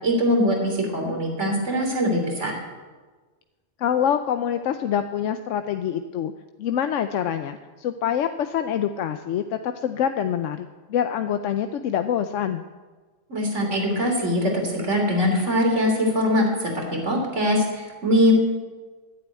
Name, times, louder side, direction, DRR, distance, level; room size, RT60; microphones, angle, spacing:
voice 1, 0.0-2.5 13.3-18.3, equal, 75° right, 1 dB, 3.6 m, -22 dB
voice 2, 3.8-6.3 6.6-12.6, left 9 dB, 90° left, 8 dB, 1.0 m, -25 dB
11.5 x 9.9 x 9.0 m, 1.3 s
omnidirectional pair, 1.3 m